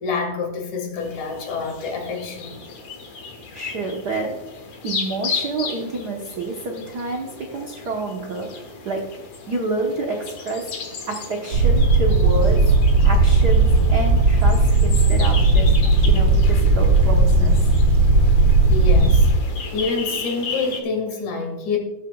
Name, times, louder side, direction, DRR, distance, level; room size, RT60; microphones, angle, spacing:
voice 1, 0.0-2.6 14.6-14.7 15.0-15.2 18.7-19.3 19.7-21.8, left 4 dB, 85° left, 2 dB, 3.3 m, -27 dB
sound 1, 1.0-20.8, left 4 dB, 65° left, 2.6 m, -35 dB
voice 2, 3.5-4.3 4.8-9.0 9.5-10.7 11.1-15.7 16.0-17.7, right 2 dB, 70° right, 0 dB, 0.9 m, -28 dB
sound 2, 11.5-19.3, right 3 dB, 50° right, 4.8 m, -16 dB
19.0 x 7.4 x 2.3 m, 1.1 s
omnidirectional pair, 3.3 m